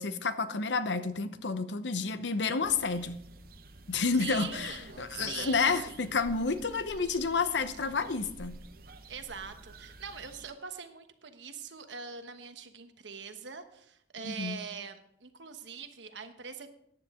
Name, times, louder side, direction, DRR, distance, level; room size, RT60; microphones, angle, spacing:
voice 1, 0.0-3.2 3.9-8.6 14.2-14.6, left 4 dB, 80° left, 11 dB, 0.8 m, -30 dB
sound 1, 2.6-10.5, right 2 dB, 55° right, 0.8 m, -51 dB
sound 2, 3.1-3.5 4.8-6.6 7.7-7.8 8.7-8.9, right 2 dB, 70° right, 1.2 m, -51 dB
voice 2, 4.1-6.0 9.1-16.7, right 6 dB, 90° right, 8 dB, 1.2 m, -43 dB
14.5 x 9.9 x 3.7 m, 0.74 s
head